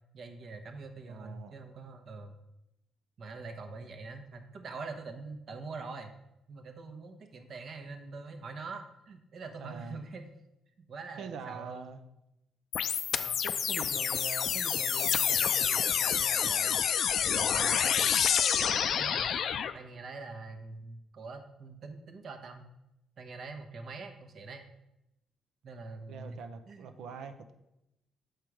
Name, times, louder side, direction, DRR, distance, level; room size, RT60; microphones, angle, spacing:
voice 1, 0.1-2.3 3.2-6.1 6.5-10.2 10.9-11.9 13.1-13.4 18.9-19.3 19.7-22.7 23.2-24.6 25.6-26.4 26.7-26.9, right 4 dB, 60° right, 6 dB, 1.0 m, -44 dB
voice 2, 1.0-1.6 9.6-10.0 11.2-12.0 13.4-16.8 17.3-18.1 20.7-20.9 26.1-27.5, right 5 dB, 80° right, 8 dB, 0.7 m, -44 dB
sound 1, 12.7-19.7, left 8 dB, 65° left, 0.4 m, -28 dB
6.6 x 4.5 x 4.8 m, 0.88 s
cardioid pair, 90°, 0 cm